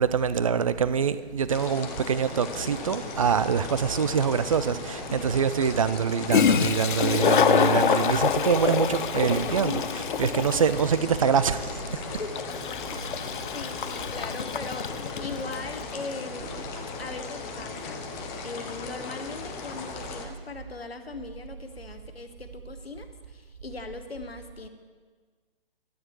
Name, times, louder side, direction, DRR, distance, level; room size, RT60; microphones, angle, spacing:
voice 1, 0.0-11.6, right 7 dB, 35° right, 14 dB, 0.4 m, -25 dB
sound 1, 1.5-20.3, left 5 dB, 15° left, 0.7 m, -38 dB
sound 2, 2.0-20.2, right 2 dB, 90° right, 1.4 m, -44 dB
Toilet flush, 4.3-4.4 6.0-6.1 6.3-15.7, left 8 dB, 55° left, 0.5 m, -26 dB
voice 2, 5.1-5.4 12.2-12.4 12.9-18.0 18.4-24.7, left 3 dB, 85° left, 8 dB, 1.1 m, -40 dB
12.0 x 9.1 x 4.7 m, 1.5 s
figure-of-eight pair, 140°, 30 cm